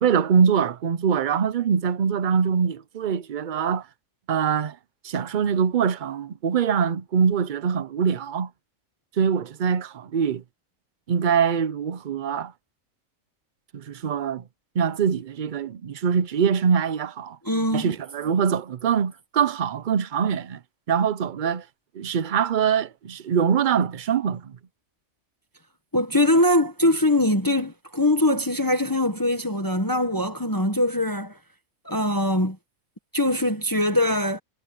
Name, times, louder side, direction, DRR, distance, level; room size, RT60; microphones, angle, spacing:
voice 1, 0.0-3.9 4.3-4.8 5.0-8.5 9.2-10.4 11.1-12.5 13.7-14.4 14.7-17.4 17.7-20.6 20.9-21.6 21.9-24.6, right 7 dB, 50° right, 0.6 m, -23 dB
voice 2, 17.4-17.9 25.9-31.4 31.8-32.6 33.1-34.4, left 1 dB, 15° left, 1.3 m, -22 dB
omnidirectional pair, 1.4 m